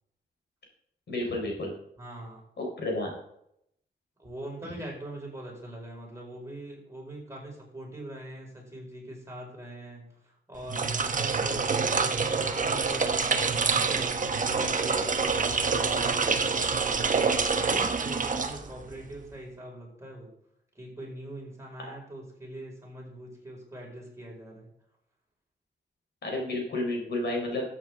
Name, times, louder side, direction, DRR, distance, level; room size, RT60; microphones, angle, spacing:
voice 1, 1.1-1.7 2.6-3.1 26.2-27.6, left 1 dB, 65° left, 0 dB, 4.1 m, -31 dB
voice 2, 2.0-2.4 4.2-20.3 20.8-24.7, right 1 dB, 15° right, -2 dB, 5.2 m, -43 dB
sound 1, 10.6-19.0, right 4 dB, 45° right, 1.0 m, -26 dB
13.5 x 8.4 x 3.7 m, 0.74 s
cardioid pair, 85°, 19 cm